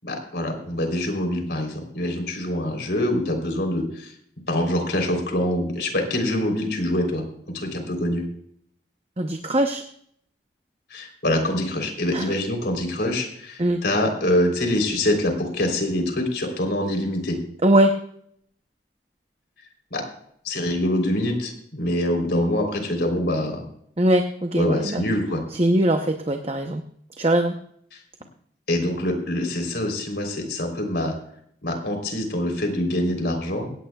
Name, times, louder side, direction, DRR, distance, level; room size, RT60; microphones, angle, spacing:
voice 1, 0.0-4.1 4.5-8.2 10.9-17.4 19.9-20.0 20.4-23.6 24.6-25.4 27.9-28.0 28.7-31.1 31.6-33.7, left 1 dB, 75° left, 3 dB, 3.5 m, -25 dB
voice 2, 9.2-9.8 12.1-12.3 13.6-13.8 17.6-17.9 24.0-25.0 25.6-26.8 27.2-27.6, right 1 dB, 35° right, 5 dB, 0.8 m, -21 dB
17.5 x 17.0 x 2.3 m, 0.68 s
head